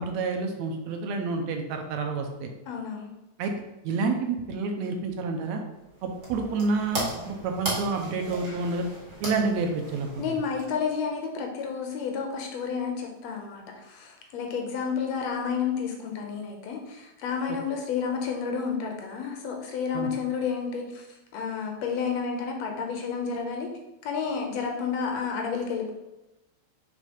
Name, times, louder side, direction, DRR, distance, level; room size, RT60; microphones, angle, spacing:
voice 1, 0.0-2.5 3.4-3.5 3.8-5.6 6.0-8.9 9.2-10.2 19.9-20.1, right 4 dB, 75° right, 4 dB, 1.9 m, -29 dB
voice 2, 2.7-3.1 10.2-21.1 21.3-23.7 24.0-25.9, left 6 dB, 70° left, 2 dB, 1.8 m, -31 dB
sound 1, 5.7-11.1, right 1 dB, 30° right, 1.4 m, -37 dB
4.9 x 4.2 x 5.1 m, 0.99 s
omnidirectional pair, 3.3 m